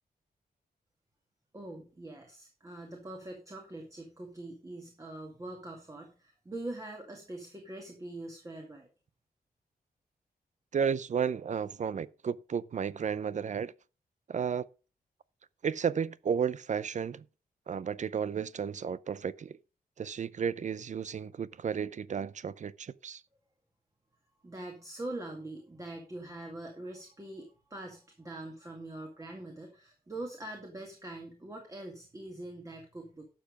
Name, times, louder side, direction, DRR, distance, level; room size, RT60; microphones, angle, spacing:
voice 1, 1.5-8.9 24.4-33.3, right 2 dB, 20° right, 2.2 m, -43 dB
voice 2, 10.7-13.7 14.3-14.7 15.6-17.2 17.7-19.6 20.0-23.2, right 7 dB, 50° right, 0.5 m, -33 dB
12.0 x 7.0 x 5.2 m
wide cardioid pair, 160°, 16 cm